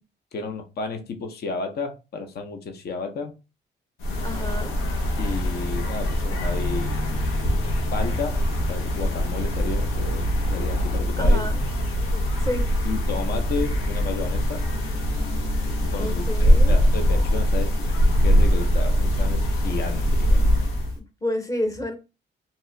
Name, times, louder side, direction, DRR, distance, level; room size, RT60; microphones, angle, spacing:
voice 1, 0.3-3.3 5.2-7.0 7.9-8.4 8.7-11.4 12.8-14.6 15.9-17.8 18.2-20.4, left 4 dB, 55° left, 0.7 m, -32 dB
sound 1, 4.0-21.0, equal, 90° left, 0.8 m, -22 dB
voice 2, 4.2-4.8 11.2-11.6 12.4-12.8 16.0-16.8 21.0-21.9, left 1 dB, 15° left, 0.8 m, -30 dB
2.8 x 2.4 x 3.1 m
cardioid pair, 90°, 20 cm